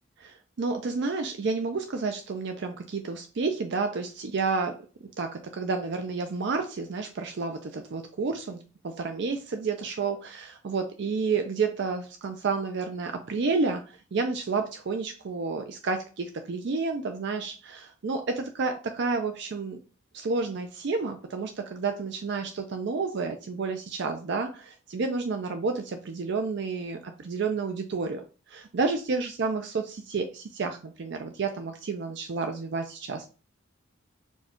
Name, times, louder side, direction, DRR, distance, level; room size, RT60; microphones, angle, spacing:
voice 1, 0.2-4.7 5.2-19.8 20.1-28.2 28.5-33.3, right 4 dB, 60° right, 5 dB, 0.4 m, -30 dB
4.4 x 2.3 x 4.3 m, 0.34 s
head